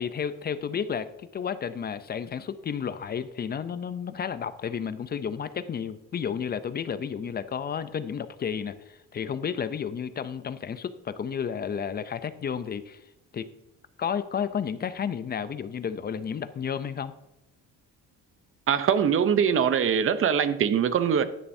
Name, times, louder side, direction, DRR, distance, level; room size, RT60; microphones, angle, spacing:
voice 1, 0.0-13.0 13.3-13.5 14.0-17.1, left 7 dB, 30° left, 13 dB, 0.5 m, -32 dB
voice 2, 18.7-21.2, right 7 dB, 40° right, 12 dB, 0.7 m, -22 dB
11.0 x 6.7 x 2.6 m, 0.91 s
cardioid pair, 115°, 32 cm